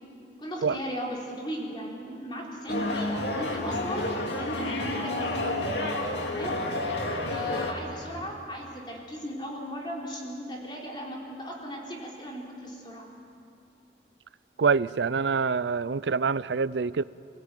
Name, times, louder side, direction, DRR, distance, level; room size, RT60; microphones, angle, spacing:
voice 1, 0.4-4.1 4.3-5.6 6.2-6.7 7.3-13.1, equal, 25° left, -2 dB, 4.0 m, -37 dB
sound 1, 2.7-7.7, left 2 dB, 90° left, 2.4 m, -30 dB
voice 2, 14.6-17.0, right 5 dB, 85° right, 18 dB, 0.5 m, -25 dB
27.5 x 16.5 x 9.1 m, 2.6 s
head